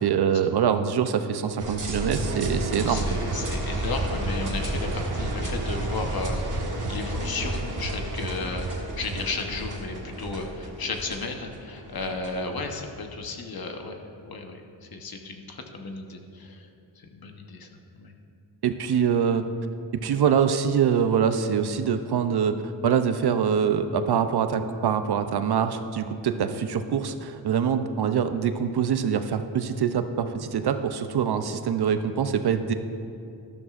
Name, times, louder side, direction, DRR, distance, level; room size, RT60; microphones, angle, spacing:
voice 1, 0.0-3.2 18.6-19.5 20.0-32.7, right 7 dB, 60° right, 9 dB, 0.6 m, -24 dB
sound 1, 1.6-12.8, right 1 dB, 40° right, 1.3 m, -31 dB
voice 2, 2.8-6.4 6.9-14.0 14.2-16.7 17.0-17.7 18.0-18.1, left 3 dB, 50° left, 4 dB, 1.1 m, -34 dB
12.5 x 12.0 x 2.5 m, 2.5 s
wide cardioid pair, 100°, 46 cm